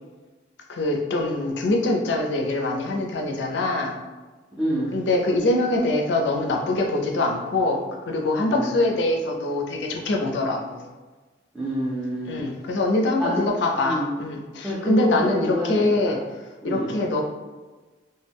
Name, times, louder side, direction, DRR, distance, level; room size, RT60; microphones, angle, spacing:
voice 1, 0.7-4.0 4.9-10.8 12.3-16.2 16.6-17.2, left 2 dB, 70° left, 2 dB, 0.4 m, -24 dB
voice 2, 4.6-4.9 8.5-8.8 11.5-12.4 13.2-13.4 13.8-14.1 14.6-16.1 16.6-16.9, equal, 5° right, -10 dB, 0.4 m, -27 dB
2.2 x 2.0 x 3.3 m, 1.3 s
head